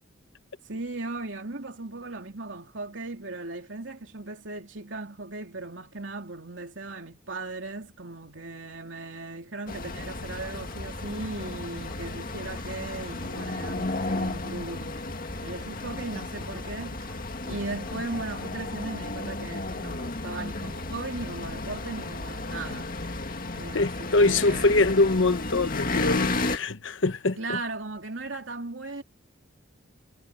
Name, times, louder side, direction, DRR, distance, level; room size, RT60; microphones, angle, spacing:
voice 1, 0.7-15.0 15.4-17.1 17.4-23.0 23.5-25.3 27.4-29.0, right 2 dB, 70° right, 3.3 m, -37 dB
sound 1, 9.7-26.6, left 2 dB, 45° left, 2.0 m, -33 dB
sound 2, 10.2-18.7, equal, ahead, 3.5 m, -49 dB
voice 2, 23.7-27.6, left 2 dB, 75° left, 1.2 m, -23 dB
head